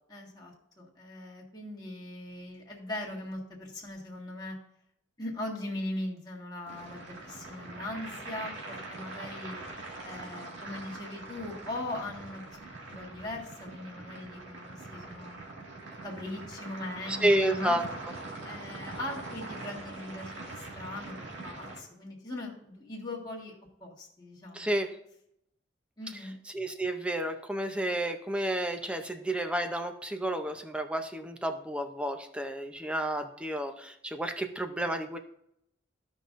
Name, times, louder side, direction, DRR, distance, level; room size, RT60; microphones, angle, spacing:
voice 1, 0.1-4.6 5.2-9.6 10.0-12.6 12.9-15.4 15.9-17.8 18.4-23.6 23.8-24.7 26.0-26.3, left 1 dB, 20° left, -5 dB, 1.7 m, -40 dB
sound 1, 6.7-21.8, right 2 dB, 75° right, 1.9 m, -43 dB
voice 2, 17.1-17.8 24.5-24.9 26.5-35.2, right 1 dB, 5° right, 6 dB, 0.6 m, -31 dB
14.5 x 5.2 x 2.5 m, 0.77 s
head